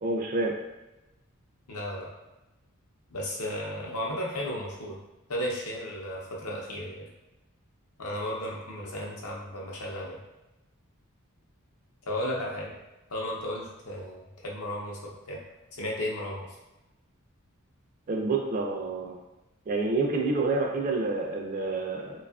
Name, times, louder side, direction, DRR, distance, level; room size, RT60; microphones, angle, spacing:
voice 1, 0.0-0.5 18.1-19.2 19.7-22.1, right 3 dB, 35° right, 1 dB, 0.3 m, -28 dB
voice 2, 1.7-2.1 3.1-5.0 5.3-7.1 8.0-10.2 12.1-12.7 13.1-15.4 15.7-16.5, left 1 dB, 70° left, -2 dB, 0.6 m, -34 dB
2.6 x 2.3 x 2.3 m, 0.99 s
head